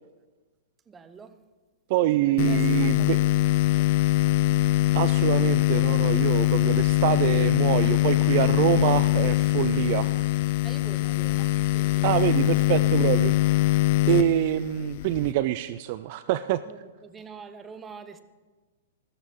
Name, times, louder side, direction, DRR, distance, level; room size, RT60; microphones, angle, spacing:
voice 1, 0.9-1.3 2.5-2.6 10.6-11.5 11.7-12.0 17.1-18.2, right 5 dB, 15° right, 0.7 m, -43 dB
voice 2, 1.9-3.2 4.9-10.1 12.0-13.8 14.1-16.6, right 15 dB, 45° right, 0.3 m, -25 dB
sound 1, 2.4-15.3, left 17 dB, 50° left, 0.3 m, -23 dB
14.0 x 13.0 x 3.6 m
hypercardioid pair, 140°, 0 cm